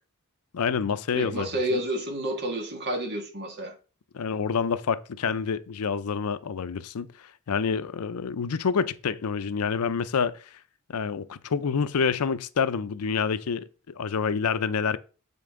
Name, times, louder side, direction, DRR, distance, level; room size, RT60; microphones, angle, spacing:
voice 1, 0.5-1.8 4.1-7.1 7.5-10.4 10.9-15.0, left 6 dB, 85° left, 0.5 m, -27 dB
voice 2, 1.1-3.7, right 1 dB, 50° right, 1.8 m, -30 dB
7.7 x 5.3 x 3.7 m
head